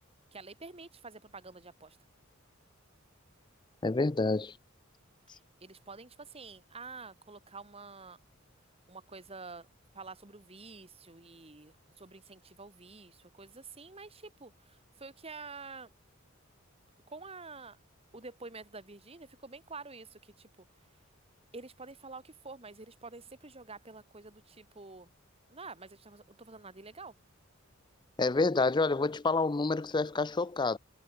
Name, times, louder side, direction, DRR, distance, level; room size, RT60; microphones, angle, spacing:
voice 1, 0.3-2.0 5.3-8.2 8.9-9.7 9.9-15.9 17.1-17.8 18.1-20.5 21.5-25.1 25.5-27.1, right 3 dB, 30° right, 2.3 m, -48 dB
voice 2, 3.8-4.5 28.2-30.8, left 3 dB, 20° left, 0.5 m, -28 dB
head